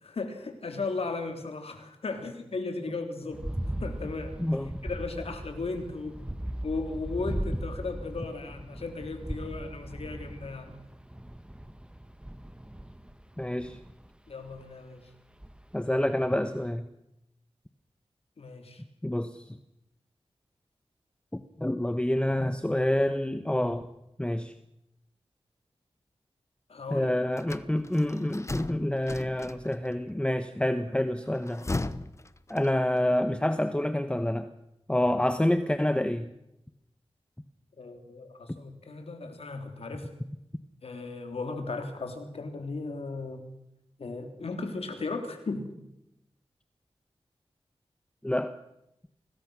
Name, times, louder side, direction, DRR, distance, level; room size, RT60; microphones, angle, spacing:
voice 1, 0.0-3.5 3.8-4.4 4.8-6.2 6.6-10.7 14.3-15.1 18.4-18.8 26.7-27.1 37.8-40.1 40.8-43.5 44.0-45.7, left 3 dB, 75° left, 6 dB, 3.5 m, -36 dB
sound 1, 3.3-14.7 15.4-15.8 16.2-16.3, right 1 dB, 10° right, 1.5 m, -38 dB
voice 2, 4.4-4.8 13.4-13.8 15.7-16.9 19.0-19.5 21.3-23.9 24.2-24.5 26.9-31.7 32.5-34.5 34.9-36.3 48.2-48.6, left 1 dB, 10° left, 9 dB, 1.2 m, -27 dB
sound 2, 27.4-29.9 31.3-33.1, left 2 dB, 30° left, 1.0 m, -36 dB
25.0 x 19.5 x 6.3 m, 0.84 s
wide cardioid pair, 65°, 10 cm